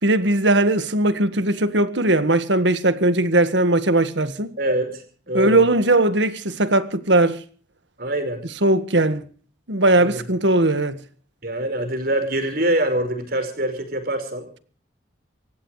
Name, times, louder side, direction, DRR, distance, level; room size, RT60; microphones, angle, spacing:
voice 1, 0.0-4.5 5.3-7.4 8.6-9.3 9.7-11.0, right 2 dB, 70° right, 1.7 m, -19 dB
voice 2, 4.6-5.6 8.0-8.4 10.0-10.2 11.4-14.5, right 1 dB, 50° right, 5.2 m, -24 dB
26.5 x 15.5 x 3.3 m
head